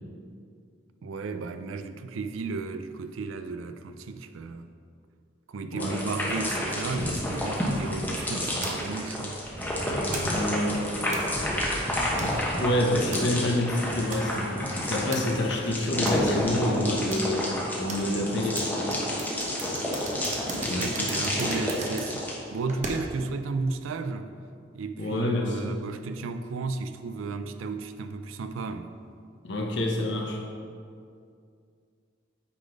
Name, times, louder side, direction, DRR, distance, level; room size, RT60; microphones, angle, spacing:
voice 1, 1.0-4.7 5.5-9.4 18.0-18.7 20.7-24.4 24.7-28.9, right 4 dB, 85° right, 0.4 m, -34 dB
sound 1, 5.8-22.3, left 1 dB, 10° left, 1.0 m, -30 dB
sound 2, 8.6-23.3, right 2 dB, 35° right, 0.8 m, -40 dB
voice 2, 10.2-11.0 12.1-14.6 14.9-17.5 17.8-18.6 20.6-20.9 25.0-25.5 29.4-30.4, left 1 dB, 65° left, 1.0 m, -27 dB
8.4 x 3.9 x 5.1 m
head